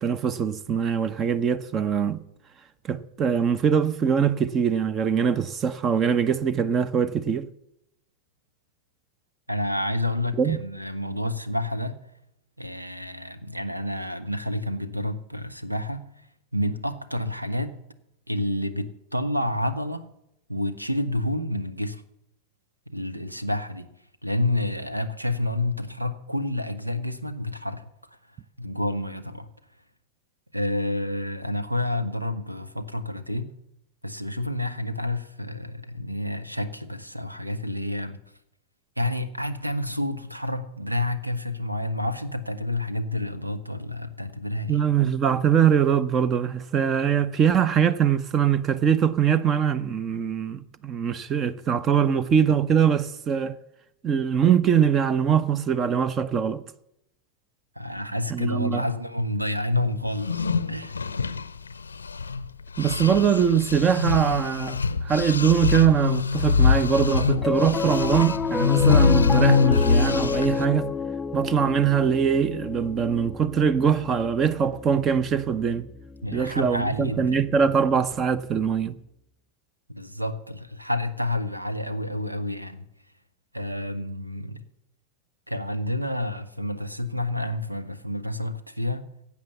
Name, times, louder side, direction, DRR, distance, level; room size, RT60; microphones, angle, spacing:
voice 1, 0.0-2.2 2.9-7.5 10.4-10.6 44.7-53.6 54.0-56.6 58.3-58.8 62.8-70.9 71.3-75.9 76.3-78.9, right 7 dB, 30° right, 0.7 m, -22 dB
voice 2, 9.5-12.0 12.6-16.1 16.5-17.7 18.3-20.1 20.5-22.0 22.9-23.9 24.2-27.8 28.6-29.5 30.5-33.5 34.0-38.2 39.0-44.9 57.8-61.0 76.2-77.4 79.9-82.9 83.5-84.6 85.5-89.1, left 1 dB, 90° right, 1.0 m, -29 dB
sound 1, 60.1-62.4 62.8-70.6, left 5 dB, 80° left, 0.6 m, -23 dB
Piano, 67.3-77.8, left 5 dB, 15° left, 0.4 m, -31 dB
16.0 x 8.4 x 6.9 m
figure-of-eight pair, 90°, 0 cm